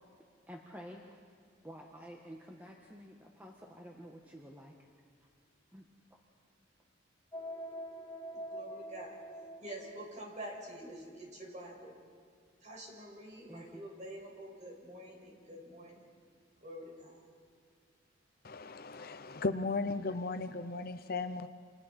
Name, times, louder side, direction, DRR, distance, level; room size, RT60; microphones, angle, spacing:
voice 1, 0.5-1.0 1.6-4.7 5.7-5.8 9.0-9.1 13.5-13.8, equal, 10° right, -1 dB, 1.4 m, -50 dB
sound 1, 7.3-10.1, equal, 15° left, 1.5 m, -44 dB
voice 2, 8.5-9.2 9.6-11.9 12.6-16.1 16.6-17.2, right 1 dB, 40° right, -1 dB, 5.9 m, -47 dB
voice 3, 18.4-21.5, left 3 dB, 50° left, 9 dB, 0.8 m, -36 dB
30.0 x 28.0 x 4.4 m, 2.2 s
head